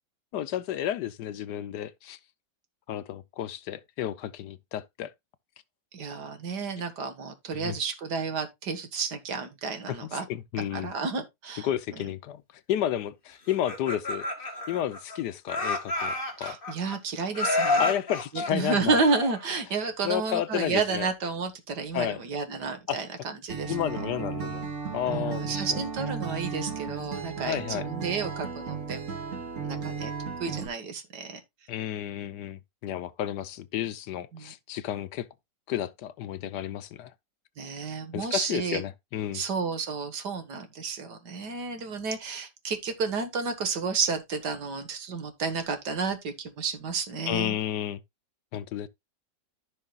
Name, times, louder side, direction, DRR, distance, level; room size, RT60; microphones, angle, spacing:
voice 1, 0.3-2.2 2.9-5.1 7.5-7.8 9.9-10.9 11.6-12.4 12.7-14.3 14.7-16.6 17.8-19.0 20.0-21.1 21.9-22.2 22.9-23.0 23.7-24.7 24.9-25.8 27.5-27.9 31.7-35.3 35.7-37.1 38.1-39.4 47.3-48.0 48.5-48.9, left 11 dB, 75° left, 1.2 m, -31 dB
voice 2, 5.9-10.3 10.6-11.7 16.4-17.9 18.3-23.1 23.4-23.7 25.1-29.1 29.7-30.1 30.4-31.4 34.3-34.5 37.6-38.8 39.3-47.6, right 4 dB, 70° right, 2.1 m, -31 dB
Laughter, 13.5-15.2 15.5-17.0 17.3-19.6, left 2 dB, 30° left, 1.9 m, -30 dB
Acoustic guitar, 23.5-30.7, right 5 dB, 45° right, 2.2 m, -34 dB
14.5 x 5.6 x 2.4 m
omnidirectional pair, 1.9 m